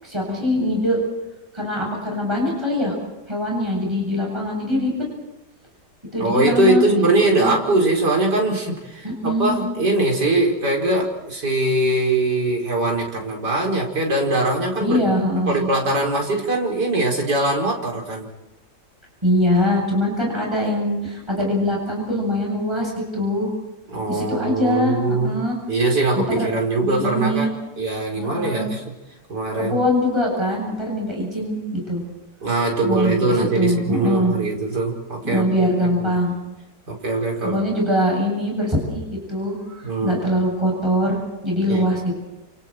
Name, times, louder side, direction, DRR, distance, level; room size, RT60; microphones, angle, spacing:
voice 1, 0.0-1.0 1.5-2.9 3.3-5.0 6.1-7.5 9.0-9.6 14.8-15.7 19.2-23.5 24.1-25.6 26.2-26.5 26.8-27.6 28.2-28.7 29.6-32.0 32.8-34.3 35.2-36.4 37.4-42.2, left 1 dB, 15° right, -2 dB, 8.2 m, -23 dB
voice 2, 6.2-15.0 15.5-18.3 23.9-25.4 25.7-28.8 29.3-29.8 32.4-35.7 36.0-36.2 36.9-37.6 39.8-40.2 41.7-41.9, right 2 dB, 80° right, 0 dB, 5.6 m, -21 dB
29.5 x 28.0 x 4.6 m, 0.97 s
omnidirectional pair, 1.8 m